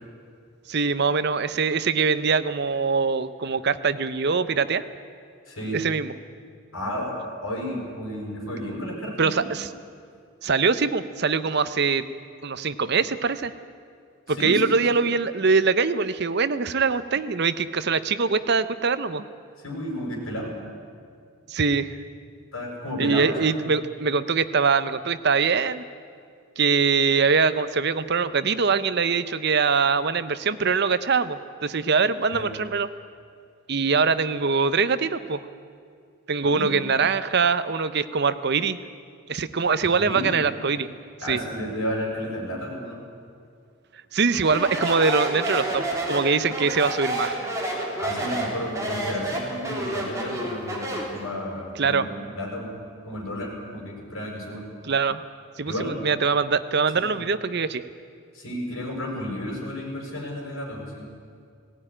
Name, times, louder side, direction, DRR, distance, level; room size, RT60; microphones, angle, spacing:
voice 1, 0.7-4.8 5.7-6.1 9.2-9.7 10.4-12.0 12.4-13.5 14.3-19.2 21.5-22.0 23.0-25.8 26.6-32.9 33.7-35.4 36.3-38.8 39.3-40.9 41.3-41.4 44.1-47.4 51.8-52.1 54.8-55.2 55.6-57.8, right 5 dB, 50° right, 13 dB, 0.7 m, -23 dB
voice 2, 5.5-5.8 6.7-7.1 7.4-9.3 14.4-14.6 14.9-15.0 19.6-20.5 22.5-23.6 32.3-32.4 36.4-36.7 40.0-40.4 41.2-43.0 48.0-52.1 52.3-52.8 53.0-54.6 55.7-56.0 57.0-57.1 58.3-61.1, equal, 75° left, -1 dB, 6.5 m, -32 dB
Speech, 44.4-51.2, right 1 dB, 15° right, 3.5 m, -29 dB
18.0 x 17.5 x 10.0 m, 2.2 s
head